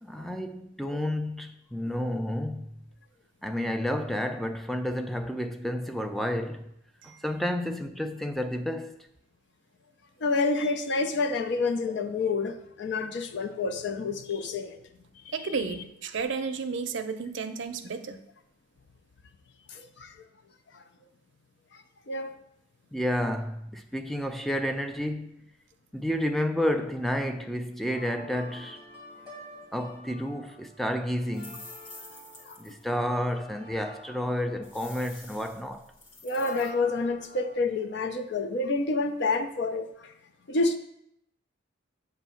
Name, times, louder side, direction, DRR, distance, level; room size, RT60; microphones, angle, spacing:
voice 1, 0.0-2.7 3.4-6.7 7.2-9.0 22.9-25.4 25.9-28.8 29.7-31.7 32.6-35.9, equal, ahead, 0.3 m, -30 dB
voice 2, 10.2-14.8 15.3-15.4 19.7-20.1 22.1-22.4 32.5-32.6 36.2-40.1 40.5-40.8, left 3 dB, 60° left, 0.5 m, -28 dB
voice 3, 15.3-18.2, right 5 dB, 65° right, 0.5 m, -32 dB
sound 1, 27.9-35.7 36.3-37.5, equal, 20° left, 2.0 m, -47 dB
sound 2, 31.3-32.8 33.3-33.4 34.6-36.7, left 2 dB, 80° left, 1.4 m, -48 dB
7.8 x 2.7 x 5.6 m
head